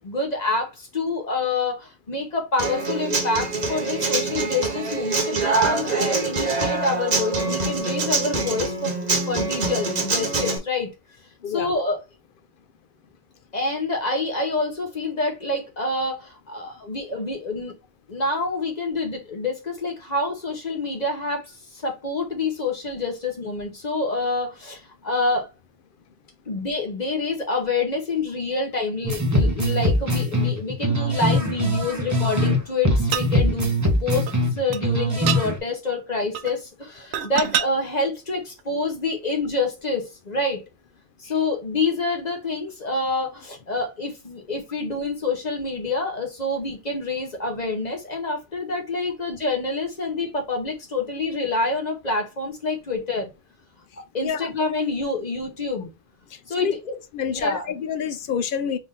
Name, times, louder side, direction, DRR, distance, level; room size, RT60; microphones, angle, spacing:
voice 1, 0.0-8.9 9.3-10.9 11.5-12.0 13.5-17.8 18.1-25.5 26.5-33.7 34.0-40.6 41.2-53.3 54.1-55.9 56.5-56.7 57.3-57.7, left 3 dB, 45° left, 1.1 m, -27 dB
Human voice / Acoustic guitar, 2.6-10.6, right 3 dB, 45° right, 0.9 m, -24 dB
sound 1, 29.0-32.6 32.8-35.6, equal, 20° right, 0.6 m, -22 dB
sound 2, 33.1-33.3 34.3-34.4 34.7-34.8 35.3-35.4 36.3-36.6 37.1-37.7 38.6-38.7, right 9 dB, 75° right, 0.8 m, -25 dB
voice 2, 57.1-58.8, left 7 dB, 60° left, 0.7 m, -27 dB
3.6 x 2.7 x 3.7 m
omnidirectional pair, 1.1 m